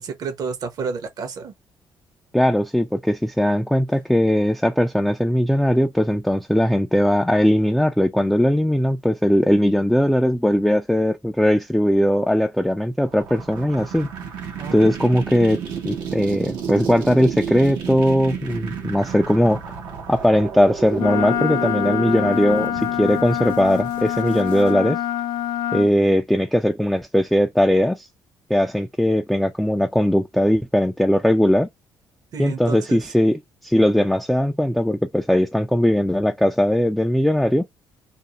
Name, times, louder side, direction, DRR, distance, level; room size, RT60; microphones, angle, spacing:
voice 1, 0.0-1.5 14.5-14.9 32.3-33.0, right 5 dB, 55° right, 0.8 m, -30 dB
voice 2, 2.3-14.1 14.7-19.6 20.1-25.0 25.7-28.1 28.5-31.7 32.4-37.6, equal, ahead, 0.3 m, -19 dB
sound 1, 13.1-24.7, right 7 dB, 90° right, 0.9 m, -32 dB
Wind instrument woodwind instrument, 21.0-25.9, left 12 dB, 70° left, 0.5 m, -25 dB
2.5 x 2.0 x 2.8 m
cardioid pair, 90°, 8 cm